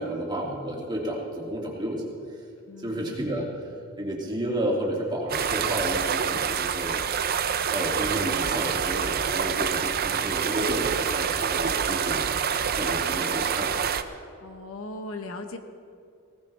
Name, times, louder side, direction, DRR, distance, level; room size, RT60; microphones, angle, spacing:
voice 1, 0.0-2.2 2.8-3.5 4.0-7.0 7.7-12.4 12.7-13.9, right 1 dB, 20° right, -3 dB, 2.5 m, -31 dB
voice 2, 2.7-3.1 14.4-15.6, left 2 dB, 70° left, 7 dB, 1.0 m, -38 dB
sound 1, 5.3-14.0, right 7 dB, 45° right, 0.6 m, -27 dB
19.5 x 17.5 x 3.3 m, 2.5 s
head